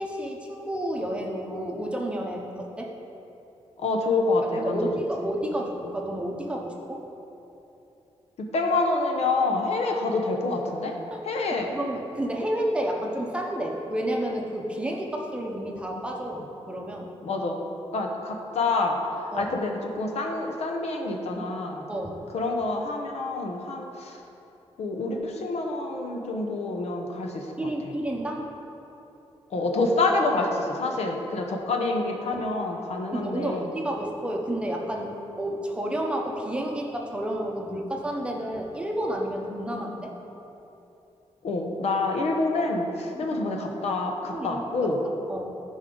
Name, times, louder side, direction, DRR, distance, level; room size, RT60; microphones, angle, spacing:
voice 1, 0.0-2.9 4.4-7.0 11.1-11.2 11.5-17.1 19.3-19.5 21.9-22.2 27.6-28.5 32.3-32.4 33.1-40.1 43.1-43.3 44.3-44.9 45.3-45.6, right 1 dB, 10° right, 0 dB, 0.8 m, -31 dB
voice 2, 3.8-4.9 8.4-10.9 11.2-11.7 17.2-17.6 17.9-19.0 19.3-21.8 22.3-24.2 24.8-27.5 29.5-33.7 41.4-45.0, left 3 dB, 75° left, 2 dB, 1.0 m, -27 dB
14.0 x 5.4 x 3.9 m, 3.0 s
wide cardioid pair, 175°, 11 cm